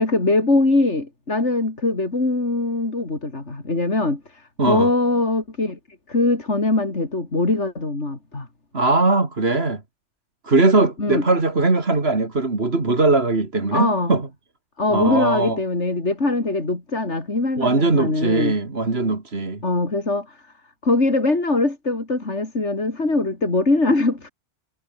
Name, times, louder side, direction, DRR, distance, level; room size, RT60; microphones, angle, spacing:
voice 1, 0.0-5.8 6.1-8.5 11.0-11.2 13.7-14.1 14.8-18.6 19.6-20.4 20.8-24.3, left 2 dB, 80° left, 4.3 m, -22 dB
voice 2, 4.6-4.9 8.7-9.8 10.4-14.3 14.9-15.6 17.6-19.6, right 3 dB, 60° right, 3.1 m, -20 dB
omnidirectional pair, 1.2 m